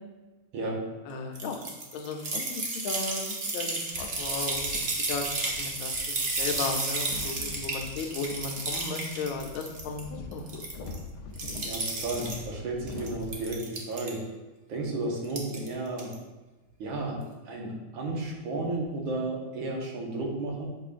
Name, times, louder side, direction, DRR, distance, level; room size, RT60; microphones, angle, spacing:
voice 1, 0.5-0.8 11.6-14.2 14.7-16.1 16.8-20.7, right 2 dB, 75° right, -1 dB, 1.8 m, -33 dB
voice 2, 1.1-1.6 1.9-4.8 5.1-10.6, left 4 dB, 85° left, 4 dB, 1.5 m, -35 dB
sound 1, 1.4-10.0 10.3-11.0 11.4-12.4 12.9-14.1 15.2-15.7 16.0-16.1, right 3 dB, 45° right, 1.0 m, -32 dB
sound 2, 3.9-13.5, left 3 dB, 65° left, 1.2 m, -43 dB
7.4 x 5.1 x 2.5 m, 1.2 s
omnidirectional pair, 2.2 m